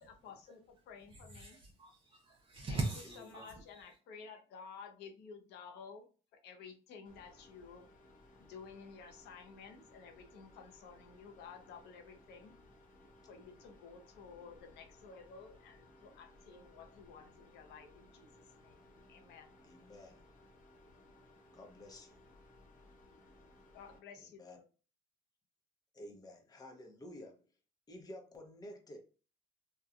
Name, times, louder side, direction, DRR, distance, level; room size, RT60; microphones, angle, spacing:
voice 1, 0.0-1.6 2.7-2.8 3.2-6.1 6.3-7.9 8.4-12.6 13.3-18.3 18.6-18.8 19.1-19.5 23.7-24.6, left 5 dB, 80° left, 0.7 m, -53 dB
voice 2, 1.1-3.9, right 2 dB, 30° right, 0.6 m, -41 dB
voice 3, 3.1-3.6 13.4-13.5 19.6-20.2 21.5-22.2 24.2-24.6 25.9-27.5 27.9-29.0, left 1 dB, 20° left, 0.7 m, -52 dB
sound 1, 7.0-24.0, left 1 dB, 50° left, 0.8 m, -61 dB
2.8 x 2.2 x 2.4 m
cardioid pair, 110°, 17 cm